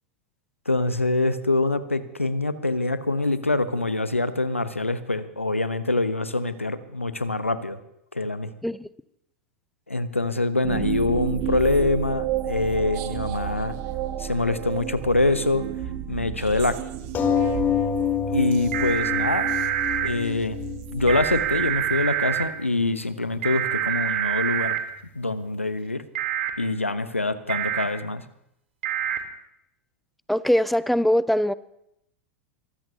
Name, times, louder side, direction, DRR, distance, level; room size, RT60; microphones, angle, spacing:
voice 1, 0.7-7.8 8.1-8.5 9.9-13.7 14.2-15.6 16.1-16.7 18.3-19.5 20.0-20.6 20.9-24.7 25.1-26.0 26.6-28.2, left 2 dB, 90° left, 14 dB, 0.8 m, -25 dB
sound 1, 10.6-22.2, right 11 dB, 45° right, 1.4 m, -32 dB
sound 2, 17.1-22.2 22.9-23.0 23.3-23.4, left 7 dB, 25° left, 1.7 m, -27 dB
sound 3, 18.7-20.1 21.1-22.4 23.4-24.8 26.1-26.5 27.5-27.8 28.8-29.2, right 11 dB, 65° right, 1.8 m, -26 dB
voice 2, 30.3-31.5, equal, ahead, 18 dB, 0.5 m, -22 dB
23.5 x 14.5 x 2.8 m, 0.79 s
figure-of-eight pair, 90°, 7 cm